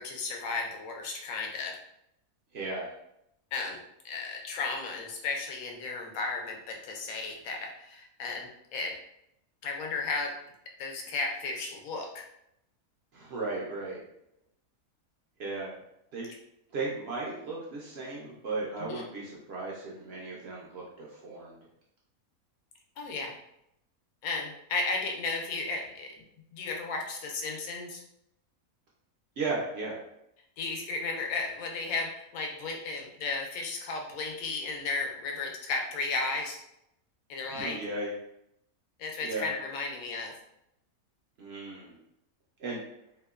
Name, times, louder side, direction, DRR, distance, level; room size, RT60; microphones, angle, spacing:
voice 1, 0.0-1.8 3.5-3.8 4.0-8.9 9.6-10.3 10.8-12.2 18.8-19.1 23.0-23.3 24.2-26.1 26.5-28.0 30.6-36.6 37.3-37.8 39.0-40.3, left 3 dB, 80° left, 1 dB, 1.0 m, -34 dB
voice 2, 2.5-2.9 13.1-14.0 15.4-15.7 16.1-16.3 16.7-21.6 29.4-30.0 37.5-38.1 39.2-39.5 41.4-42.0 42.6-42.8, right 3 dB, 65° right, -4 dB, 0.6 m, -36 dB
2.9 x 2.1 x 2.3 m, 0.79 s
omnidirectional pair, 1.5 m